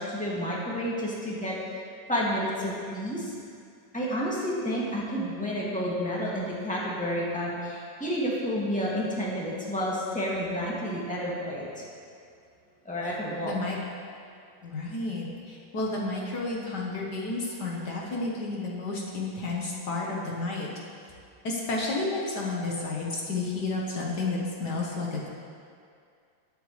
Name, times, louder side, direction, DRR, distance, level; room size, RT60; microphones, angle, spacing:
voice 1, 0.0-1.6 2.1-3.3 3.9-11.8 12.8-13.7, equal, 5° left, -6 dB, 2.2 m, -30 dB
voice 2, 13.4-13.8 14.6-20.7 21.4-25.3, left 3 dB, 65° left, -3 dB, 1.8 m, -31 dB
19.5 x 8.2 x 3.3 m, 2.3 s
omnidirectional pair, 2.0 m